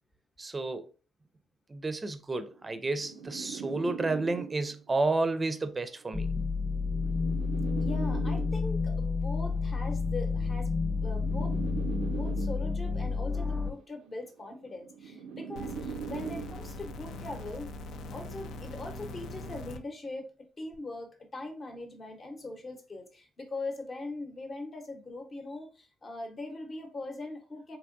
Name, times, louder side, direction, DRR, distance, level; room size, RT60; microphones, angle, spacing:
voice 1, 0.4-0.9 1.7-6.4, right 3 dB, 25° right, 0.5 m, -31 dB
sound 1, 2.5-4.9 5.9-8.9 9.9-12.9 13.9-16.9, right 6 dB, 90° right, 0.3 m, -41 dB
sound 2, 6.1-13.7, left 4 dB, 10° left, 1.0 m, -30 dB
voice 2, 7.8-11.6 12.0-17.7 18.1-20.3 20.6-27.8, left 2 dB, 35° left, 0.9 m, -41 dB
sound 3, 15.6-19.8 20.7-20.8, left 2 dB, 80° left, 0.4 m, -42 dB
3.4 x 2.9 x 2.5 m
cardioid pair, 90°, 0 cm